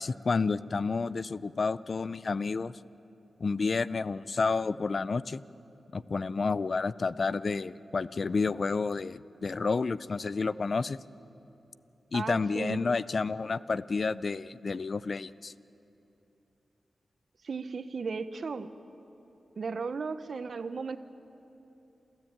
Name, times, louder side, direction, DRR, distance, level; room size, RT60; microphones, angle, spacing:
voice 1, 0.0-2.7 3.4-5.4 5.9-11.0 12.1-15.5, left 4 dB, 50° left, 18 dB, 0.4 m, -30 dB
voice 2, 12.1-12.8 17.4-18.7 19.6-21.0, right 4 dB, 65° right, 11 dB, 0.9 m, -35 dB
28.0 x 14.0 x 8.8 m, 2.9 s
wide cardioid pair, 95°, 0 cm